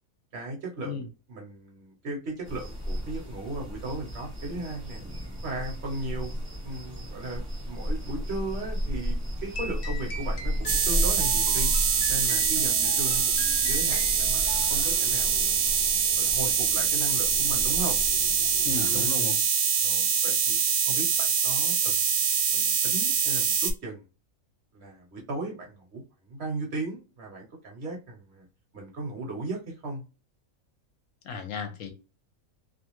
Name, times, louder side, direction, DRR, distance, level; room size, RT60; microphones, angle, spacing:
voice 1, 0.3-1.0 1.3-5.0 5.4-6.3 6.6-11.7 12.1-15.7 16.2-18.0 18.9-19.4 19.8-20.6 20.9-22.0 22.5-24.0 24.7-28.5 28.7-30.0, right 2 dB, 55° right, 0 dB, 0.9 m, -37 dB
sound 1, 2.4-19.1, equal, 25° right, 0.7 m, -34 dB
sound 2, 9.4-14.7, left 2 dB, 50° left, 0.8 m, -41 dB
sound 3, 10.7-23.7, right 7 dB, 75° right, 1.0 m, -24 dB
voice 2, 18.6-19.4 31.2-31.9, left 5 dB, 70° left, 6 dB, 0.9 m, -34 dB
2.4 x 2.3 x 2.9 m, 0.32 s
omnidirectional pair, 1.5 m